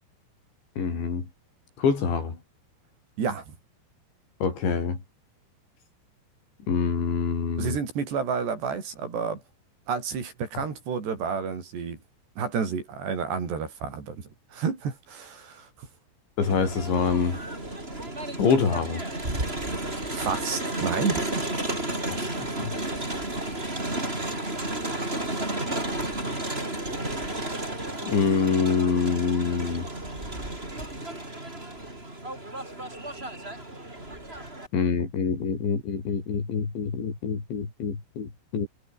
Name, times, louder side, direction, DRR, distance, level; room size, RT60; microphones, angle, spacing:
voice 1, 0.8-1.3 1.8-2.4 4.4-5.0 6.7-7.8 16.4-17.4 18.4-19.0 22.1-22.7 28.0-29.9 34.7-38.7, left 5 dB, 70° left, 8.3 m, -26 dB
voice 2, 3.2-3.6 7.6-9.4 9.9-12.0 12.4-15.9 20.1-21.5, right 6 dB, 60° right, 6.9 m, -30 dB
Crowd, 16.4-34.7, right 1 dB, 10° right, 5.8 m, -32 dB
omnidirectional pair, 5.4 m